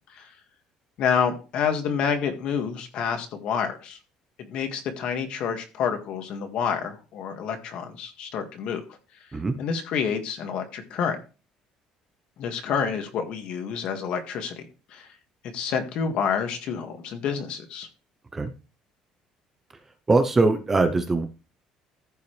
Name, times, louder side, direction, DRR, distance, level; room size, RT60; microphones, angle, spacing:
voice 1, 1.0-4.0 4.4-8.8 9.6-11.2 12.4-14.6 14.9-15.1 15.5-17.9, left 7 dB, 50° left, 1.9 m, -28 dB
voice 2, 20.1-21.3, right 3 dB, 15° right, 0.7 m, -21 dB
14.5 x 5.6 x 3.3 m
cardioid pair, 175°, 2 cm